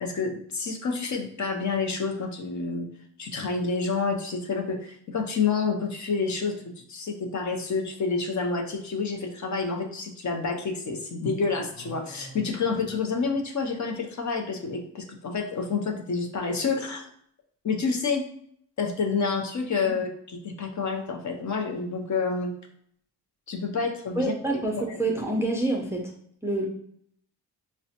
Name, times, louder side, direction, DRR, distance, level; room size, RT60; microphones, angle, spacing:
voice 1, 0.0-2.9 3.2-17.1 17.6-18.3 18.8-22.5 23.5-24.3 24.8-24.9, left 4 dB, 45° left, 3 dB, 0.6 m, -28 dB
sound 1, 11.6-14.1, right 1 dB, 10° left, 1.3 m, -48 dB
voice 2, 24.2-26.0 26.4-26.7, right 2 dB, 5° right, -1 dB, 0.4 m, -27 dB
6.0 x 2.1 x 2.8 m, 0.66 s
wide cardioid pair, 135°, 43 cm